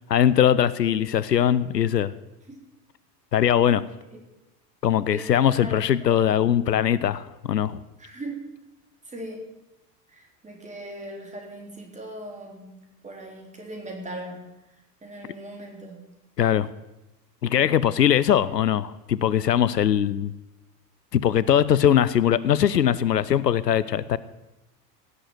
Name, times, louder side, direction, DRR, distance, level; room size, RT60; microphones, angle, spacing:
voice 1, 0.1-2.1 3.3-3.8 4.8-7.8 16.4-16.7 17.4-20.3 21.1-24.2, left 10 dB, 80° left, 18 dB, 0.6 m, -21 dB
voice 2, 5.1-6.3 8.0-8.5 9.1-9.5 10.1-12.7 13.0-14.5 15.0-16.0, right 1 dB, 15° right, 1 dB, 3.8 m, -39 dB
16.5 x 8.0 x 8.0 m, 0.98 s
figure-of-eight pair, 75°, 48 cm